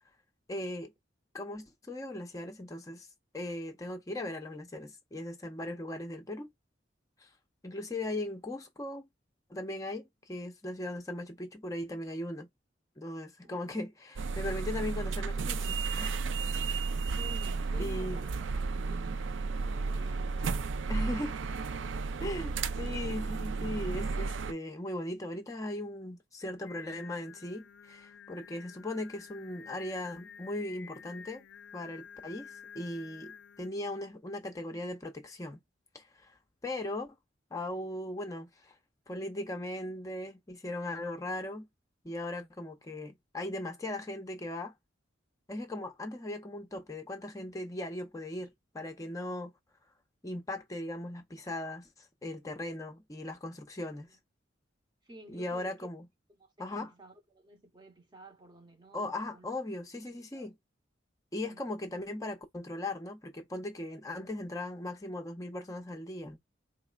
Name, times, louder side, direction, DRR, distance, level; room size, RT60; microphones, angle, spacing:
voice 1, 0.5-0.9 1.3-3.1 3.3-6.5 7.2-7.3 7.6-9.0 9.5-12.5 13.0-16.2 17.1-17.2 17.8-18.2 20.9-21.3 22.2-31.4 31.7-35.6 35.9-36.4 36.6-37.2 37.5-38.8 39.1-41.7 42.0-44.7 45.5-49.5 50.2-54.2 55.3-56.1 56.6-56.9 58.9-60.6 61.3-66.4, left 1 dB, 15° left, 0.5 m, -38 dB
sound 1, 14.2-24.5, right 4 dB, 75° right, 0.4 m, -33 dB
voice 2, 17.0-21.4 54.1-54.2 55.0-55.9 56.3-59.4 60.0-60.5 61.4-61.7, right 1 dB, 25° right, 0.8 m, -54 dB
Singing, 26.7-33.7, left 7 dB, 65° left, 0.4 m, -51 dB
4.1 x 3.1 x 2.2 m
head